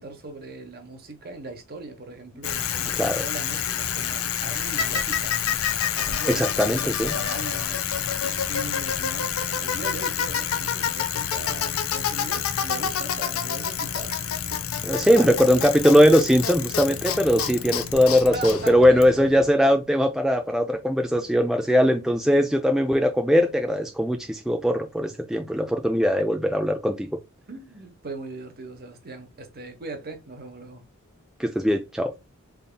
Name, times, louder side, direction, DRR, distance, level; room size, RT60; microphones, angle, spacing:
voice 1, 0.0-5.4 6.0-15.7 18.3-19.0 21.1-21.3 21.7-21.9 22.3-22.5 27.5-30.8, right 3 dB, 50° right, 1.0 m, -39 dB
Bicycle, 2.4-19.5, left 8 dB, 80° left, 0.5 m, -28 dB
voice 2, 6.3-7.1 14.8-27.1 31.4-32.1, equal, ahead, 0.3 m, -20 dB
4.0 x 3.5 x 2.2 m
head